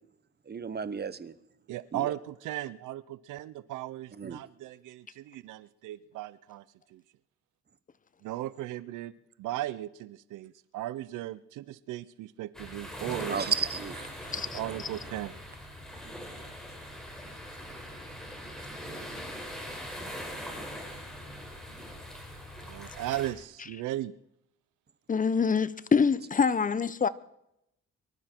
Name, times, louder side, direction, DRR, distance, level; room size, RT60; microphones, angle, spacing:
voice 1, 0.5-1.3 1.9-2.1 4.2-4.4 13.3-14.1, right 6 dB, 35° right, 1.0 m, -33 dB
voice 2, 1.7-6.6 6.9-7.0 8.2-13.5 14.3-15.4 18.8-19.0 22.6-24.1, right 14 dB, 85° right, 0.6 m, -37 dB
sound 1, 12.5-23.3, equal, ahead, 5.5 m, -41 dB
voice 3, 14.2-14.6 25.1-27.1, left 5 dB, 25° left, 0.8 m, -25 dB
24.0 x 12.5 x 4.5 m
cardioid pair, 90°, 30 cm